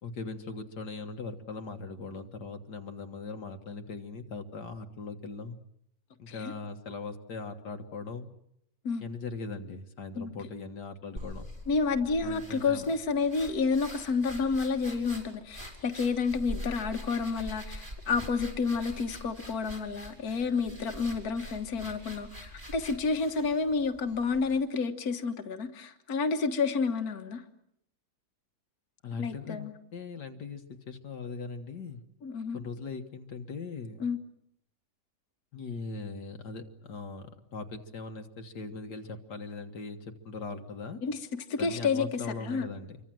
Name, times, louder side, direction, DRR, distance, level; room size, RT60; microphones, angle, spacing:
voice 1, 0.0-5.6 6.2-8.3 9.0-11.5 12.2-12.9 29.0-32.0 32.5-34.0 35.5-41.0 41.6-43.0, left 4 dB, 75° left, 6 dB, 2.1 m, -40 dB
sound 1, 11.2-24.6, equal, 30° right, 6.3 m, -44 dB
voice 2, 11.7-27.4 29.2-29.7 32.2-32.6 34.0-34.2 41.0-41.2 41.5-42.7, left 4 dB, 60° left, 6 dB, 1.9 m, -30 dB
27.5 x 24.0 x 7.7 m, 0.75 s
omnidirectional pair, 1.8 m